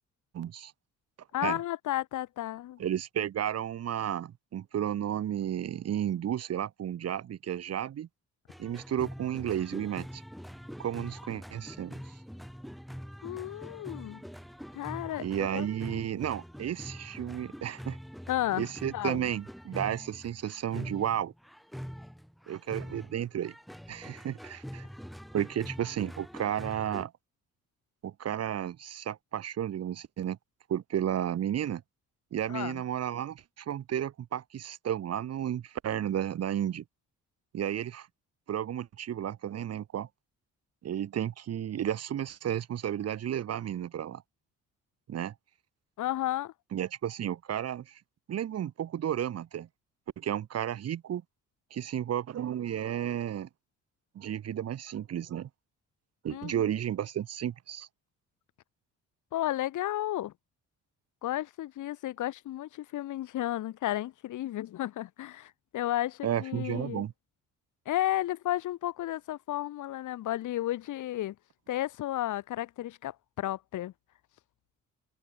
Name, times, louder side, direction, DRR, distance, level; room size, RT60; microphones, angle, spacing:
voice 1, 0.3-0.7 1.4-1.6 2.8-8.1 8.6-10.2 10.8-12.0 15.2-18.0 18.6-21.3 22.5-23.5 23.9-24.8 25.3-27.1 28.0-30.4 30.7-31.8 32.3-36.8 37.5-38.1 38.5-40.1 40.8-44.2 45.1-45.3 46.7-48.0 48.3-49.7 50.2-51.2 51.7-53.5 54.1-55.5 56.2-57.9 66.2-67.1, right 10 dB, 55° right, 1.2 m, -33 dB
voice 2, 1.3-2.8 13.2-14.2 14.7-15.7 15.9-16.0 18.3-19.3 32.5-32.8 46.0-46.5 56.3-56.6 59.3-60.3 61.2-67.1 67.8-71.3 71.7-73.9, left 14 dB, 80° left, 3.1 m, -33 dB
sound 1, 8.5-27.1, equal, ahead, 8.0 m, -44 dB
cardioid pair, 90°, 30 cm